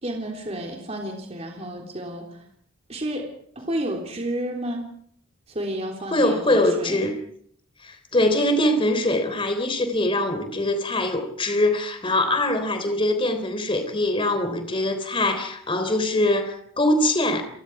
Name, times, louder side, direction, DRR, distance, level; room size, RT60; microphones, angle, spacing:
voice 1, 0.0-2.4 2.9-3.3 3.6-4.8 5.5-7.1, right 1 dB, 30° right, 1 dB, 3.6 m, -31 dB
voice 2, 6.1-7.1 7.8-17.4, left 1 dB, 25° left, 8 dB, 3.5 m, -23 dB
29.0 x 23.0 x 4.8 m, 0.63 s
head